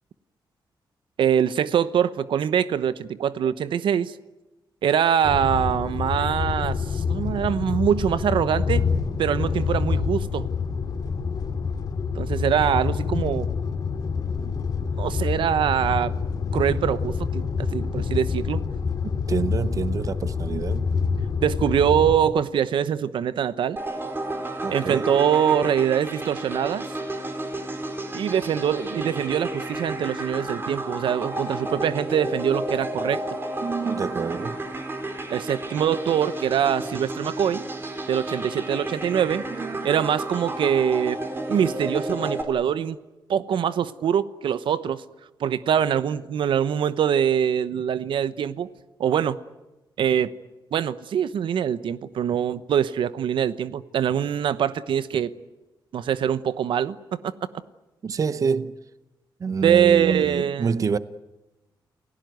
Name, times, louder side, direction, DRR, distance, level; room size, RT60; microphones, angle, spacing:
voice 1, 1.2-4.1 4.8-8.8 9.2-10.5 12.2-13.5 15.0-16.1 16.5-18.6 21.4-23.8 24.7-26.9 28.1-33.2 35.3-37.6 38.1-39.4 39.8-41.2 41.5-43.0 43.3-45.0 45.4-48.7 49.0-49.4 50.0-50.3 50.7-55.3 55.9-57.0 59.6-60.8, right 9 dB, 80° right, 1.0 m, -23 dB
sound 1, 5.2-22.2, left 5 dB, 50° left, 2.3 m, -27 dB
voice 2, 19.3-20.9 24.6-25.1 33.6-34.6 39.5-40.2 58.0-58.8 59.4-61.0, right 5 dB, 40° right, 0.8 m, -27 dB
sound 2, 23.8-42.4, right 2 dB, 25° right, 4.2 m, -32 dB
29.5 x 16.5 x 9.4 m
wide cardioid pair, 140°, 8 cm